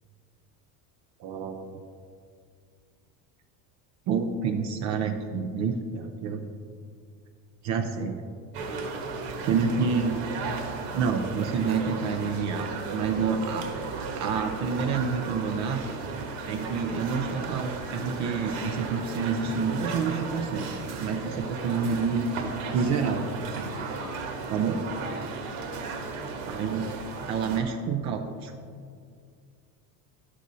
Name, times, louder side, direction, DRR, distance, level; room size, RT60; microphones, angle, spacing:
voice 1, 1.2-1.8 4.1-6.5 7.6-8.2 9.4-10.2 10.9-13.7 14.1-15.8 16.5-22.3 22.7-23.3 24.5-24.9 26.4-27.0 27.3-28.5, right 5 dB, 45° right, 5 dB, 0.6 m, -28 dB
sound 1, 8.5-27.6, right 4 dB, 90° right, 1.6 m, -35 dB
12.5 x 6.2 x 4.1 m, 2.2 s
cardioid pair, 175°, 39 cm